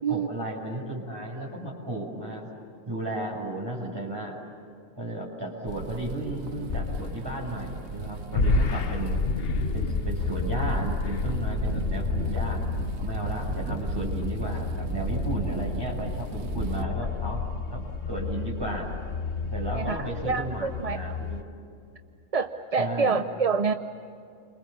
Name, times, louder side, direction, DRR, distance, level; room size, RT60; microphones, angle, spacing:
voice 1, 0.1-2.5 2.9-4.4 5.0-9.2 9.7-12.6 13.0-17.4 17.7-18.9 19.4-21.4 22.8-23.2, right 1 dB, 20° right, -2 dB, 6.9 m, -34 dB
sound 1, 5.7-16.8, right 3 dB, 85° right, 1.4 m, -35 dB
sound 2, 6.7-8.1 8.3-21.4, left 4 dB, 50° left, 1.0 m, -30 dB
voice 2, 19.7-21.2 22.3-23.7, right 5 dB, 35° right, 7 dB, 0.7 m, -27 dB
29.5 x 26.0 x 7.1 m, 2.5 s
omnidirectional pair, 1.3 m